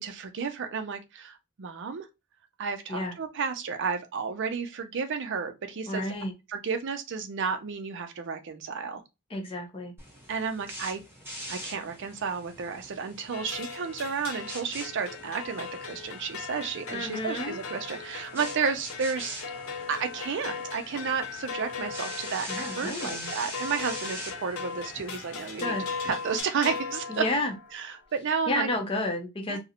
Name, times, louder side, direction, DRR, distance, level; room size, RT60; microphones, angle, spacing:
voice 1, 0.0-2.1 2.6-6.0 6.5-9.0 10.3-11.0 11.5-19.6 19.9-25.8 26.0-27.2 27.7-28.7 29.5-29.6, right 5 dB, 55° right, 0.5 m, -32 dB
voice 2, 5.9-6.3 9.3-9.9 16.9-17.6 22.5-23.3 25.6-25.9 27.1-27.5 28.5-29.6, left 1 dB, 25° left, 0.6 m, -31 dB
sound 1, 10.0-26.4, equal, 10° right, 1.0 m, -44 dB
sound 2, 13.3-27.8, left 5 dB, 70° left, 0.5 m, -38 dB
2.4 x 2.0 x 2.8 m
head